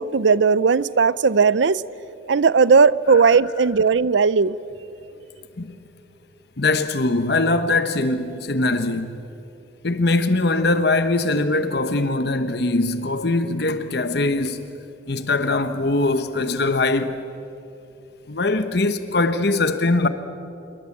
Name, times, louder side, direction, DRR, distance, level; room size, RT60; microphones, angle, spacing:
voice 1, 0.0-1.8 2.3-4.6, right 5 dB, 70° right, 0.5 m, -17 dB
voice 2, 6.6-9.2 9.8-14.7 15.1-17.2 18.3-20.1, left 2 dB, 60° left, 1.0 m, -21 dB
27.5 x 23.0 x 8.5 m
head